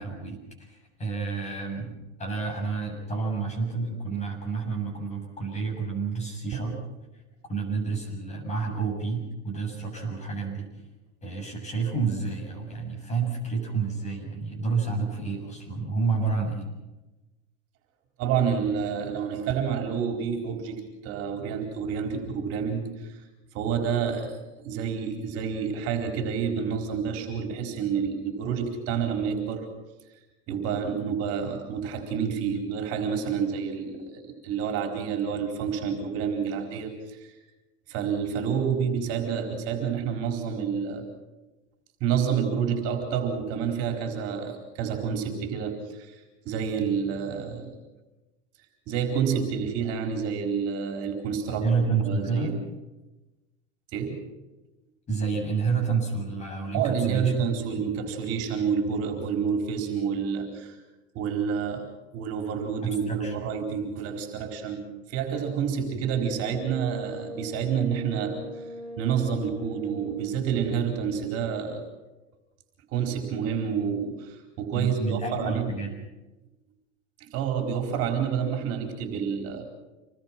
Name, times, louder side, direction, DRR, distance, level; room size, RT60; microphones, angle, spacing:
voice 1, 0.0-6.8 7.5-10.7 11.2-16.7 51.6-52.6 55.1-57.4 62.8-63.5 74.7-76.0, right 4 dB, 20° left, 2 dB, 7.4 m, -29 dB
voice 2, 18.2-23.2 23.5-29.7 30.5-37.3 37.9-41.1 42.0-46.2 46.4-47.8 48.9-51.7 52.0-52.6 53.9-54.2 56.7-60.8 61.1-68.7 69.0-71.8 72.9-75.8 77.2-79.6, right 7 dB, 45° right, 4 dB, 4.5 m, -29 dB
Brass instrument, 66.2-70.5, equal, ahead, 3.8 m, -41 dB
27.5 x 20.5 x 6.1 m, 1.1 s
supercardioid pair, 140°, 34 cm